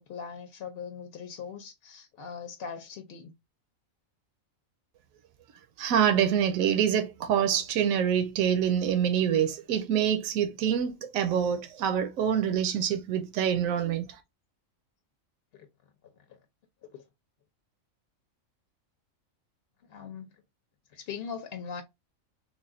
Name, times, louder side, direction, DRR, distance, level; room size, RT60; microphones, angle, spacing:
voice 1, 0.1-3.3 15.5-15.7 16.3-16.4 16.8-17.0 19.9-20.3 20.9-21.8, left 6 dB, 55° left, 0.8 m, -40 dB
voice 2, 5.8-14.2, right 9 dB, 85° right, 1.0 m, -26 dB
3.4 x 2.4 x 3.6 m
omnidirectional pair, 1.4 m